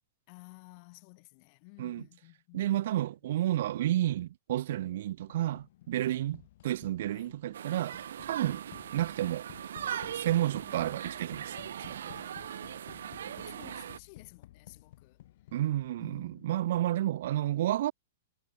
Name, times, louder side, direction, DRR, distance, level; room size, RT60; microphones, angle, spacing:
voice 1, 0.3-2.7 3.0-3.2 6.0-6.2 7.1-7.4 8.5-8.6 10.7-11.4 12.1-15.2 16.0-16.5, left 36 dB, 35° left, 7.9 m, -55 dB
voice 2, 2.5-6.4 6.6-8.6 8.9-9.4 10.1-12.1 15.5-17.9, right 13 dB, 55° right, 2.3 m, -31 dB
sound 1, 5.3-16.2, left 14 dB, 55° left, 4.2 m, -54 dB
sound 2, 7.5-14.0, right 9 dB, 80° right, 2.3 m, -40 dB
supercardioid pair, 165°, 0 cm